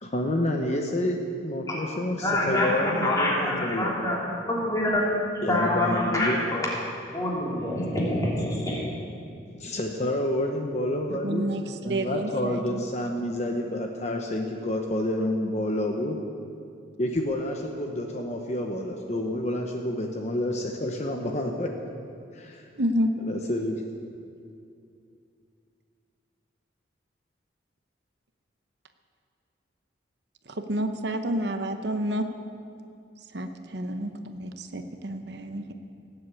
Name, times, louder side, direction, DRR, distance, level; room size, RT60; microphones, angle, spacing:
voice 1, 0.0-3.9 5.4-6.4 9.5-11.4 11.8-16.2 17.0-21.7 22.3-22.7 23.3-23.8, left 1 dB, 35° left, 2 dB, 1.0 m, -29 dB
voice 2, 2.2-5.1 5.5-6.7 7.1-8.8, left 1 dB, 20° left, -5 dB, 3.1 m, -26 dB
voice 3, 11.2-12.8 22.7-23.1 30.5-32.3 33.3-35.7, equal, 60° right, 7 dB, 0.9 m, -29 dB
18.0 x 7.9 x 8.4 m, 2.4 s
head